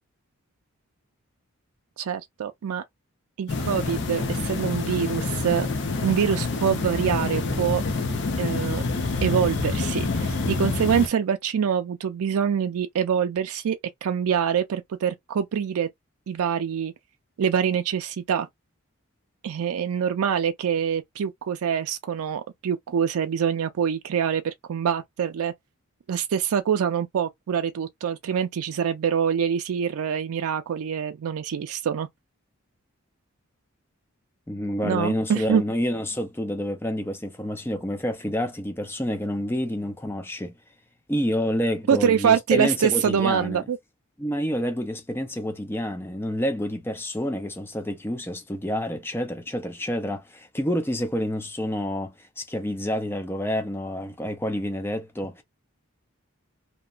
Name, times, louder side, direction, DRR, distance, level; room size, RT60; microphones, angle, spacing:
voice 1, 2.0-2.8 3.4-5.7 6.0-7.8 8.4-8.8 9.2-15.9 16.3-16.9 17.4-18.5 19.4-25.5 26.1-32.1 34.8-35.6 41.9-43.8, right 8 dB, 80° right, 0.4 m, -25 dB
sound 1, 3.5-11.1, left 3 dB, 50° left, 0.7 m, -27 dB
voice 2, 34.5-40.5 41.1-43.6 44.2-55.4, equal, 10° left, 0.4 m, -28 dB
2.9 x 2.1 x 2.4 m
head